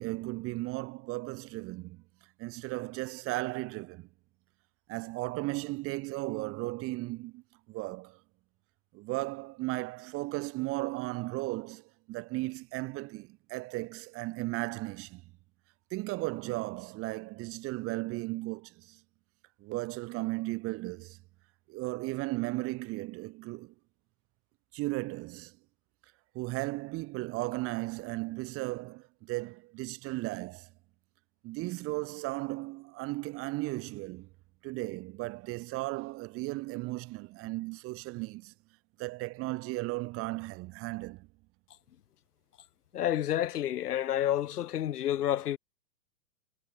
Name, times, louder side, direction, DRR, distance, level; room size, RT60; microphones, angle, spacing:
voice 1, 0.0-2.0 2.4-4.1 4.9-7.4 7.7-8.2 8.9-15.2 15.9-19.0 19.6-21.2 21.7-23.7 24.7-25.6 26.3-30.7 31.4-34.3 34.6-38.5 39.0-41.3, right 21 dB, 30° right, 1.8 m, -36 dB
voice 2, 42.9-45.6, left 11 dB, 75° left, 1.5 m, -29 dB
hypercardioid pair, 140°, 46 cm